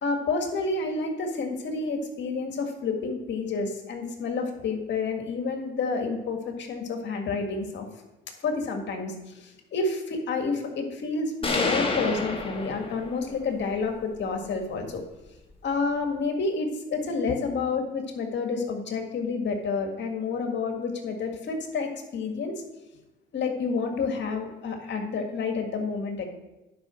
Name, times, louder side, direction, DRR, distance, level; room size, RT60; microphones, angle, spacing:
voice 1, 0.0-7.8 8.4-15.0 15.6-22.5 23.3-26.2, left 4 dB, 65° left, 3 dB, 1.8 m, -29 dB
sound 1, 11.4-13.4, left 3 dB, 25° left, 1.5 m, -28 dB
10.5 x 5.4 x 6.2 m, 1.0 s
cardioid pair, 90°, 20 cm